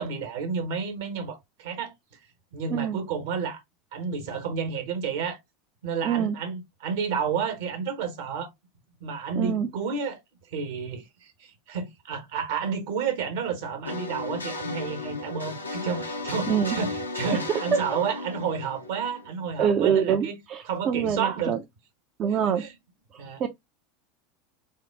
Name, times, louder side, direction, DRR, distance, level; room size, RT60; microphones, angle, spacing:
voice 1, 0.0-2.2 2.5-3.6 3.9-5.4 5.8-8.5 9.0-10.2 10.5-20.4 20.7-21.6 22.3-22.7 23.2-23.4, right 6 dB, 65° right, 1.1 m, -31 dB
voice 2, 6.0-6.4 9.4-9.7 16.5-16.8 17.7-17.8 19.6-21.6 22.2-22.6 23.4-23.5, right 8 dB, 40° right, 0.4 m, -25 dB
sound 1, 13.9-19.6, left 2 dB, 85° left, 0.6 m, -34 dB
3.6 x 2.4 x 3.4 m
figure-of-eight pair, 80°, 0 cm